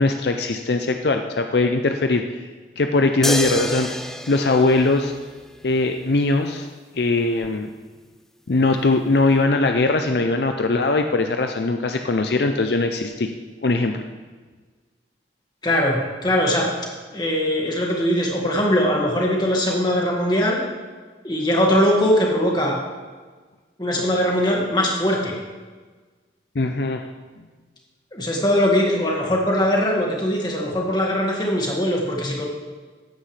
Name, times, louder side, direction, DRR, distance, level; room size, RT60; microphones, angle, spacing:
voice 1, 0.0-2.4 2.8-3.9 4.3-5.1 5.6-6.7 6.9-7.7 8.5-13.3 13.6-14.0 26.6-27.0, left 3 dB, 65° left, 6 dB, 0.6 m, -20 dB
sound 1, 3.2-5.7 7.4-7.5, left 1 dB, ahead, 0.4 m, -28 dB
voice 2, 15.6-16.7 17.1-20.6 21.2-22.8 23.8-25.3 28.1-32.5, equal, 25° left, -1 dB, 1.9 m, -21 dB
14.5 x 9.7 x 3.3 m, 1.4 s
head